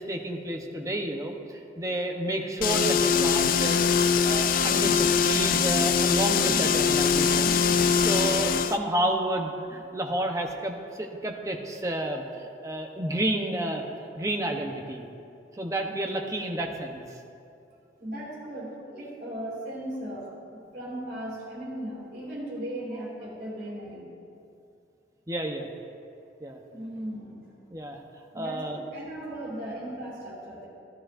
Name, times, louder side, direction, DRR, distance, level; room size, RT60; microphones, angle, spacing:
voice 1, 0.0-3.8 4.2-7.5 8.0-13.8 14.2-15.1 15.5-17.0 25.3-25.7 26.4-26.6 27.7-28.0 28.3-28.8, right 1 dB, 15° right, 2 dB, 0.8 m, -30 dB
sound 1, 2.6-8.8, left 6 dB, 50° left, 0.3 m, -22 dB
voice 2, 18.0-24.1 26.7-27.4 28.3-30.7, right 1 dB, 50° right, -8 dB, 2.7 m, -37 dB
15.0 x 11.5 x 2.5 m, 2.6 s
head